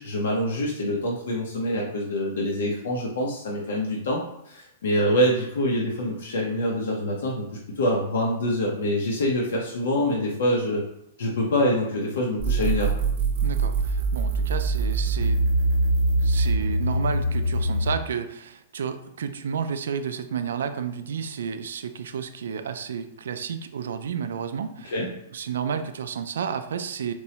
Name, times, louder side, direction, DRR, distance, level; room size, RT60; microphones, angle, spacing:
voice 1, 0.0-7.4 7.8-10.8 11.2-12.9 24.9-25.1, equal, 80° left, -3 dB, 0.7 m, -25 dB
sound 1, 12.4-18.0, right 2 dB, 50° right, 0.8 m, -23 dB
voice 2, 13.4-15.4 16.2-25.0 25.3-27.1, right 7 dB, 90° right, 9 dB, 0.3 m, -31 dB
4.4 x 2.1 x 2.8 m, 0.78 s
supercardioid pair, 175°, 0 cm